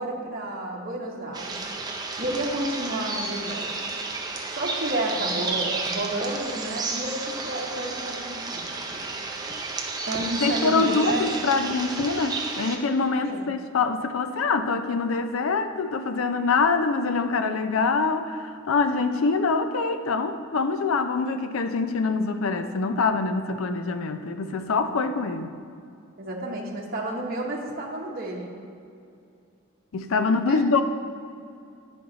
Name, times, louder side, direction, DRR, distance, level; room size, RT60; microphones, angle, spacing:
voice 1, 0.0-1.6 2.2-3.7 4.5-9.0 10.1-11.3 13.2-13.4 26.2-28.5 30.5-30.6, right 1 dB, 45° right, -2 dB, 0.9 m, -31 dB
sound 1, 1.3-12.8, right 3 dB, 20° right, 0.6 m, -32 dB
voice 2, 10.4-25.5 29.9-30.8, left 4 dB, 75° left, 8 dB, 0.5 m, -24 dB
9.4 x 5.2 x 3.9 m, 2.5 s
head